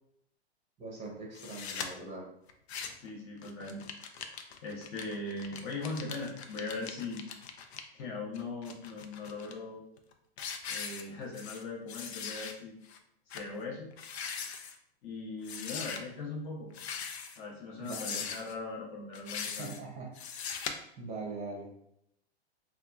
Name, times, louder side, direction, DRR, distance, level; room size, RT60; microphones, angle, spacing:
voice 1, 0.8-2.3 17.8-18.2 19.5-20.1 21.0-21.7, right 3 dB, 20° right, -2 dB, 0.7 m, -41 dB
sound 1, 1.3-1.9 2.5-3.1 3.4-7.8 8.3-9.5 10.0-10.1 10.4-11.6 11.9-12.5 12.9-13.0 13.3-13.5 13.9-14.7 15.4-16.0 16.7-17.4 17.8-18.5 19.1-19.8 20.1-20.7, left 6 dB, 70° left, 0.5 m, -40 dB
voice 2, 3.0-3.8 4.6-7.3 7.9-9.8 10.7-12.8 13.3-13.9 15.0-16.7 17.4-19.7, left 3 dB, 35° left, -2 dB, 0.6 m, -40 dB
2.8 x 2.2 x 2.3 m, 0.73 s
hypercardioid pair, 125°, 33 cm